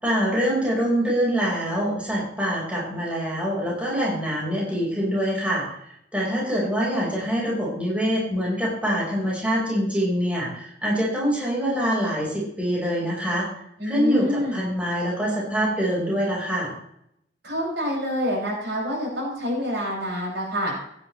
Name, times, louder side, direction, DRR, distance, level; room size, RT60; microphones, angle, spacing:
voice 1, 0.0-13.5 13.9-16.7, equal, 5° right, -5 dB, 4.4 m, -25 dB
voice 2, 13.8-14.6 17.4-20.7, equal, 70° right, -3 dB, 6.1 m, -27 dB
15.5 x 11.0 x 3.2 m, 0.75 s
head